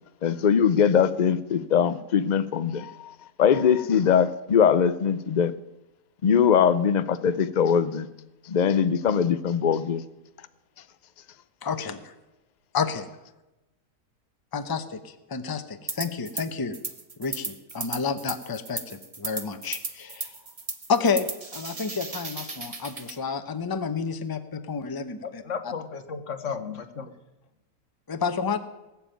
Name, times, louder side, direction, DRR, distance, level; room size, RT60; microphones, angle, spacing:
voice 1, 0.2-3.1 3.4-5.5 6.2-8.1 8.5-10.0, left 7 dB, 90° left, 13 dB, 0.4 m, -21 dB
voice 2, 11.6-12.1 12.7-13.1 14.5-16.8 17.2-20.3 20.9-25.4 28.1-28.6, left 5 dB, 20° left, 10 dB, 0.7 m, -30 dB
sound 1, 15.9-16.5 16.7-23.2, right 3 dB, 25° right, 1.0 m, -36 dB
voice 3, 25.2-27.1, left 6 dB, 55° left, 10 dB, 1.4 m, -34 dB
19.0 x 7.2 x 9.2 m, 1.0 s
omnidirectional pair, 1.6 m